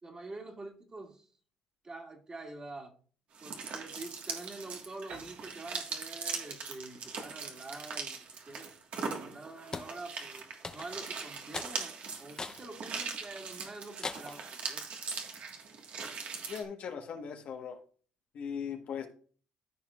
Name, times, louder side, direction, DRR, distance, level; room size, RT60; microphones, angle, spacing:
voice 1, 0.0-1.3 1.8-2.9 3.4-8.7 9.2-14.8, right 2 dB, 30° right, 2 dB, 2.1 m, -46 dB
sound 1, 3.3-16.6, right 5 dB, 60° right, 1.6 m, -41 dB
Piano, 5.1-8.7, right 4 dB, 75° right, 4.1 m, -55 dB
sound 2, 9.7-9.9 10.6-11.1 11.5-11.8 12.4-12.6 13.1-13.2 14.0-14.4, left 4 dB, 30° left, 0.7 m, -39 dB
voice 2, 16.5-17.8 18.3-19.1, left 7 dB, 60° left, 4 dB, 1.3 m, -39 dB
14.0 x 4.9 x 2.4 m, 0.43 s
supercardioid pair, 80°, 3 cm